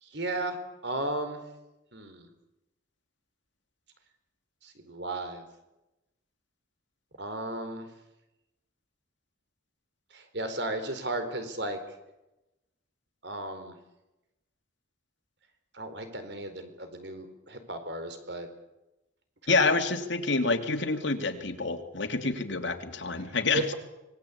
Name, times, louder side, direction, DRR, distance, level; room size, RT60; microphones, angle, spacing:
voice 1, 0.0-1.4 1.9-2.3 4.6-5.4 7.2-7.9 10.1-11.8 13.2-13.7 15.7-18.5 19.4-19.8 23.5-23.7, right 1 dB, 60° right, 8 dB, 4.3 m, -35 dB
voice 2, 19.5-23.7, left 3 dB, 70° left, 6 dB, 2.7 m, -27 dB
25.5 x 20.5 x 8.5 m, 0.95 s
head